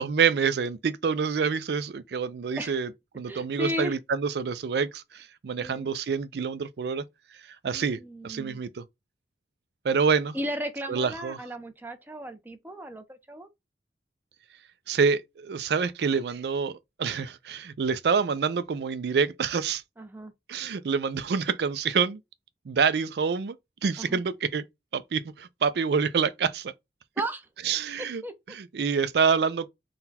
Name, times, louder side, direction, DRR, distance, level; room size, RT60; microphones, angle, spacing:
voice 1, 0.0-7.0 7.3-8.8 9.8-10.4 10.9-11.4 14.9-19.8 20.5-22.2 22.7-23.6 23.8-24.6 24.9-26.7 27.6-28.2 28.5-29.7, right 5 dB, 70° right, 0.4 m, -27 dB
voice 2, 3.3-3.9 5.6-5.9 7.7-8.6 10.3-13.5 20.0-20.3 24.0-24.2 27.2-27.4 28.0-28.3, equal, 10° right, 0.6 m, -35 dB
3.9 x 2.2 x 4.1 m
head